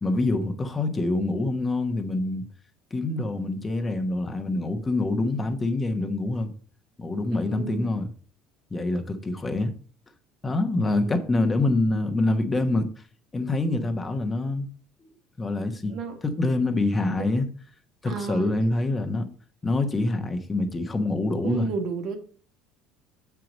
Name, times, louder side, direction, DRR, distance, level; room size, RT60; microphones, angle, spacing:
voice 1, 0.0-2.4 2.9-6.5 7.0-8.1 8.7-9.7 10.4-12.9 13.3-14.7 15.0-15.1 15.4-15.9 16.2-17.5 18.0-19.3 19.6-21.7, left 2 dB, 15° left, 1.1 m, -26 dB
voice 2, 7.3-7.9 10.8-11.2 15.9-16.2 17.2-17.3 18.0-19.0 21.4-22.2, right 5 dB, 55° right, 1.5 m, -33 dB
7.6 x 4.7 x 5.2 m
cardioid pair, 140°, 0 cm